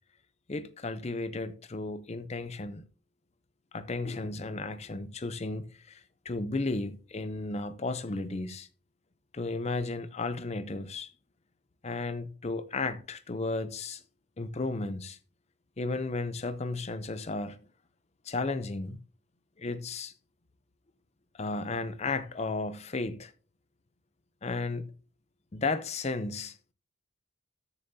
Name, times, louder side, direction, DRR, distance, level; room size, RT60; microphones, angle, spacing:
voice 1, 0.5-2.8 3.7-8.7 9.3-11.1 11.8-14.0 14.4-15.2 15.8-17.6 18.2-19.0 19.6-20.1 21.4-23.3 24.4-24.9 25.5-26.6, left 3 dB, 35° left, 0.6 m, -34 dB
13.5 x 7.0 x 2.7 m
head